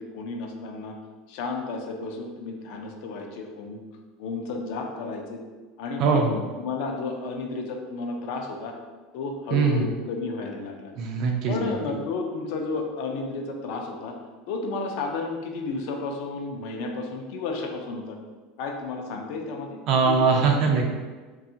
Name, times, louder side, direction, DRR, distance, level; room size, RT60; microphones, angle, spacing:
voice 1, 0.1-0.9 1.3-3.8 4.2-5.4 5.8-6.2 6.6-8.7 9.1-10.9 11.5-14.2 14.5-18.2 18.6-19.8 20.0-20.7, left 3 dB, 65° left, 2 dB, 0.4 m, -32 dB
voice 2, 6.0-6.4 9.5-9.9 11.0-11.7 19.9-20.8, right 5 dB, 50° right, 2 dB, 0.4 m, -22 dB
2.7 x 2.3 x 2.7 m, 1.3 s
supercardioid pair, 145°, 0 cm